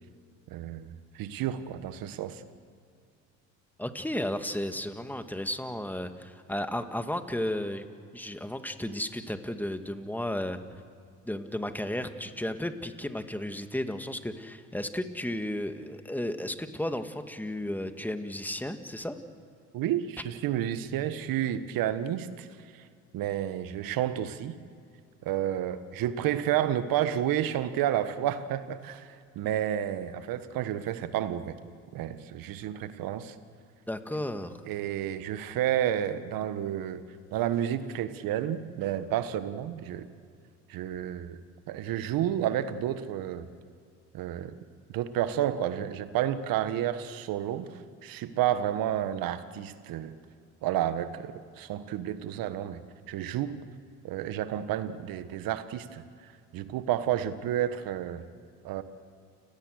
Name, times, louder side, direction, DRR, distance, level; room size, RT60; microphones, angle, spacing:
voice 1, 0.5-2.4 19.7-22.5 23.1-24.6 25.2-31.6 31.9-33.3 34.6-37.0 37.3-40.1 40.7-41.4 41.7-43.5 44.1-44.6 44.9-47.7 48.0-50.1 50.6-52.8 53.1-53.6 54.0-56.0 56.5-58.2 58.6-58.8, right 11 dB, 65° right, 12 dB, 1.5 m, -30 dB
voice 2, 3.8-7.8 8.1-10.6 11.2-19.2 33.9-34.6, left 1 dB, 5° left, 8 dB, 1.9 m, -33 dB
30.0 x 18.0 x 6.6 m, 2.3 s
hypercardioid pair, 65°, 36 cm